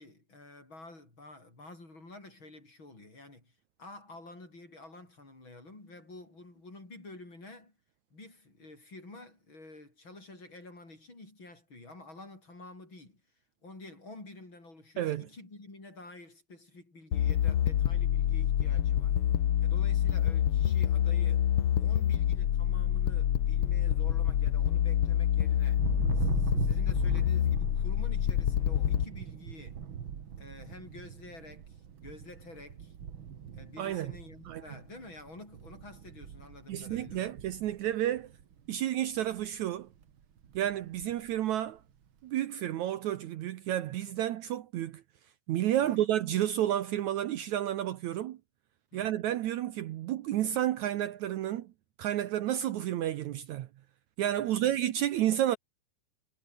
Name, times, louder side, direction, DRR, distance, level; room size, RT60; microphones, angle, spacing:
voice 1, 0.0-7.8 8.1-13.2 13.6-19.2 19.6-21.5 21.8-25.9 26.1-29.8 30.4-32.9 33.5-37.3 45.8-46.1 48.9-49.1 54.4-54.7, left 2 dB, 30° left, 8.2 m, -50 dB
sound 1, 17.1-29.0, left 10 dB, 90° left, 1.2 m, -27 dB
Thunder, 25.8-38.7 39.0-39.6 39.9-41.4, right 8 dB, 50° right, 1.5 m, -40 dB
voice 2, 33.8-34.1 34.5-34.6 36.7-38.3 38.7-39.9 40.5-41.8 42.2-45.0 45.5-48.4 48.9-51.7 52.0-53.7 54.2-55.6, right 12 dB, 75° right, 1.7 m, -31 dB
omnidirectional pair, 4.5 m